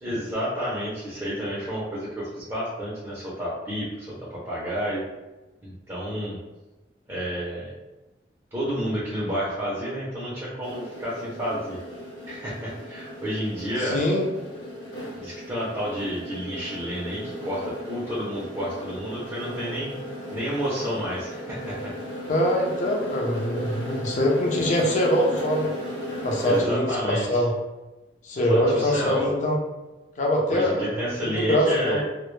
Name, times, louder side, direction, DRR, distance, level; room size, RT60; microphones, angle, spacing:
voice 1, 0.0-5.0 5.6-6.4 7.1-7.7 8.5-11.8 12.3-14.0 15.2-19.9 20.3-21.9 26.4-27.4 28.5-29.3 30.5-32.0, equal, 15° right, -7 dB, 0.5 m, -30 dB
sound 1, 10.6-26.8, equal, 65° left, 0.9 m, -36 dB
voice 2, 13.8-14.2 22.3-25.7 26.2-27.5 28.2-29.6 30.2-32.0, equal, 40° left, -1 dB, 0.5 m, -23 dB
2.0 x 2.0 x 3.0 m, 1.1 s
head